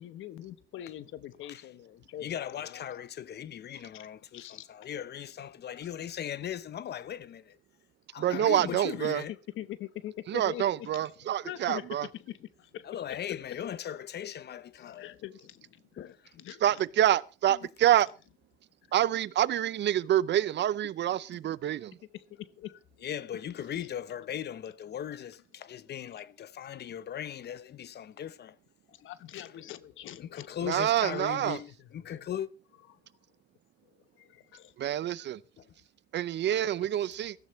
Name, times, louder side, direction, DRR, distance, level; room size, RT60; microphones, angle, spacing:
voice 1, 0.0-2.8 3.9-4.1 4.3-4.7 8.3-8.8 9.6-13.2 14.8-16.8 17.5-17.7 21.3-21.4 22.1-22.8 23.7-23.9 28.9-30.5 30.9-31.0 31.4-31.6 32.0-32.2 34.2-34.7, left 12 dB, 80° left, 1.0 m, -44 dB
voice 2, 2.2-7.6 8.1-9.3 12.8-15.1 16.0-16.3 23.0-28.6 29.3-29.4 30.2-32.5 35.6-35.7 36.5-36.9, left 10 dB, 55° left, 0.8 m, -39 dB
voice 3, 8.2-9.2 10.3-12.1 16.6-18.1 18.9-22.0 30.6-31.6 34.8-35.4 36.1-37.4, right 11 dB, 60° right, 0.6 m, -27 dB
16.5 x 14.5 x 3.1 m
cardioid pair, 90°, 20 cm